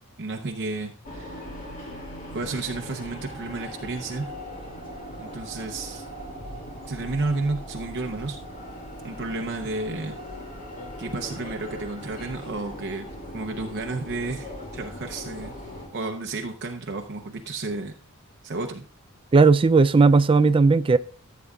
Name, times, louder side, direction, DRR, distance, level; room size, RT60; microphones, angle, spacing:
voice 1, 0.2-2.0 2.3-4.3 5.2-6.0 6.9-8.4 9.0-10.2 11.0-13.1 13.3-15.6 15.9-17.9 18.4-18.8, right 3 dB, 50° right, 0.7 m, -32 dB
sound 1, 1.0-15.9, equal, 35° left, 2.5 m, -39 dB
voice 2, 19.3-21.0, right 4 dB, 25° right, 0.3 m, -16 dB
14.5 x 8.4 x 2.4 m
head